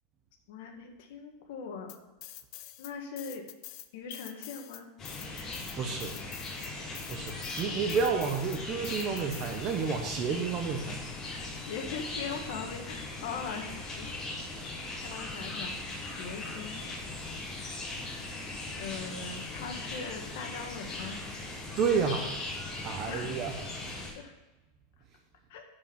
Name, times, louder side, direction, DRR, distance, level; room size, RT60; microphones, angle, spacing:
voice 1, 0.5-2.0 2.8-3.5 3.9-4.9 11.3-14.1 15.0-15.8 16.2-16.8 18.8-21.2 23.1-23.4 24.1-24.3 25.5-25.6, left 5 dB, 65° left, 4 dB, 1.7 m, -40 dB
sound 1, 1.9-2.9 3.2-10.0, left 14 dB, 45° left, 0.5 m, -46 dB
sound 2, 5.0-24.1, left 2 dB, 25° left, 3.7 m, -39 dB
voice 2, 5.8-6.1 7.1-11.0 21.8-22.4 22.8-23.5, right 5 dB, 30° right, 3 dB, 0.9 m, -30 dB
11.0 x 5.0 x 5.8 m, 1.1 s
supercardioid pair, 160°, 0 cm